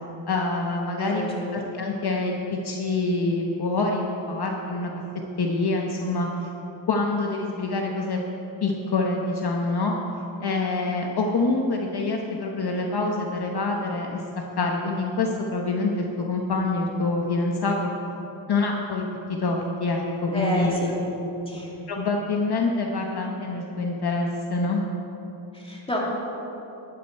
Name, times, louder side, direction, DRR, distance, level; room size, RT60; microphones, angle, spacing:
voice 1, 0.3-1.2 1.5-4.9 5.4-6.5 6.9-8.2 8.6-9.9 10.4-14.2 14.6-17.9 18.5-19.0 19.4-20.8 21.9-24.8, left 3 dB, 55° left, 1 dB, 1.0 m, -26 dB
voice 2, 1.0-1.6 20.3-21.0 21.5-21.7 25.5-26.0, left 1 dB, 10° left, -4 dB, 2.7 m, -29 dB
12.0 x 9.2 x 4.5 m, 3.0 s
cardioid pair, 85°, 46 cm